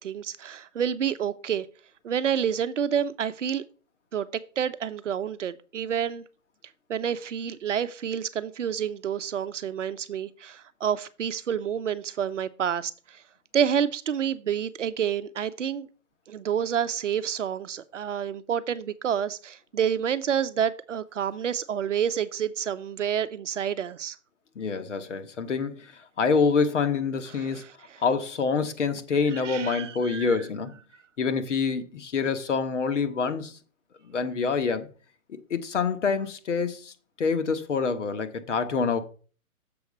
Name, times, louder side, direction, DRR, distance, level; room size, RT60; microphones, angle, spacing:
voice 1, 0.0-1.7 2.0-3.6 4.1-4.3 4.6-6.2 6.9-13.2 13.5-15.9 16.3-24.2 27.3-28.0 29.3-30.3, right 8 dB, 55° right, 0.8 m, -29 dB
voice 2, 24.5-27.6 28.0-30.8 31.2-33.6 34.1-34.9 35.3-39.0, left 5 dB, 55° left, 1.3 m, -26 dB
7.0 x 4.5 x 6.6 m
hypercardioid pair, 170°, 43 cm